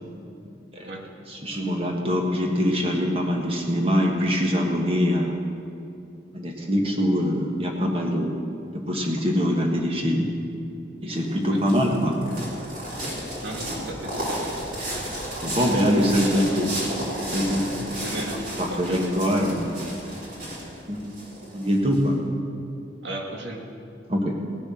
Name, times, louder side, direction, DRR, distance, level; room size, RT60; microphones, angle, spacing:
voice 1, 1.3-5.3 6.3-8.4 8.7-10.3 11.0-12.2 15.4-16.9 17.3-17.9 18.6-19.6 20.9-21.0 21.5-22.2 24.1-24.3, equal, 30° right, 0 dB, 1.4 m, -23 dB
sound 1, 11.2-22.0, equal, 45° right, 3.2 m, -32 dB
voice 2, 13.4-14.9 15.7-16.6 18.0-18.4 18.7-19.1 23.0-23.6, right 1 dB, 85° right, 1 dB, 1.7 m, -36 dB
18.0 x 6.5 x 6.4 m, 2.6 s
head